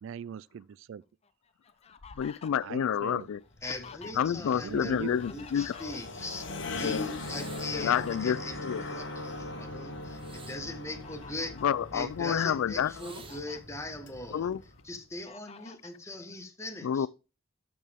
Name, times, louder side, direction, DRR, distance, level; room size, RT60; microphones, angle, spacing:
voice 1, 0.0-1.0 2.6-3.3 4.6-5.1, right 7 dB, 70° right, 0.3 m, -40 dB
Fowl, 1.2-4.5 4.8-6.4 7.3-9.4 9.8-10.0 10.7-11.7 12.4-12.5 12.8-13.6 14.1-14.8 15.3-16.0, left 5 dB, 30° left, 0.6 m, -51 dB
voice 2, 2.2-3.4 4.1-6.0 6.8-7.1 7.7-8.9 11.6-13.1 14.3-14.6 16.8-17.1, left 8 dB, 90° left, 0.3 m, -29 dB
sound 1, 3.4-15.0, left 2 dB, 60° left, 1.7 m, -41 dB
voice 3, 3.6-11.5 11.9-14.5 14.8-17.1, left 2 dB, 15° left, 1.2 m, -40 dB
sound 2, 7.0-7.9 10.1-11.6 12.8-13.4 14.5-14.8, right 5 dB, 25° right, 0.7 m, -51 dB
12.5 x 5.3 x 3.5 m
head